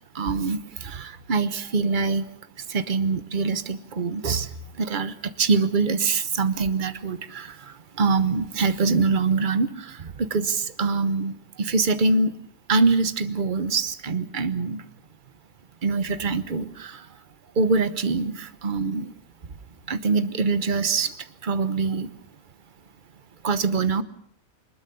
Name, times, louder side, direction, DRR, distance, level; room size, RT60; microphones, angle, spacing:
voice 1, 0.1-2.2 2.7-4.5 4.8-12.3 12.7-14.8 15.8-17.0 17.6-19.1 19.9-21.1 21.4-22.1 23.4-24.0, right 4 dB, 35° right, 13 dB, 1.0 m, -24 dB
22.5 x 21.0 x 6.9 m, 0.65 s
omnidirectional pair, 1.6 m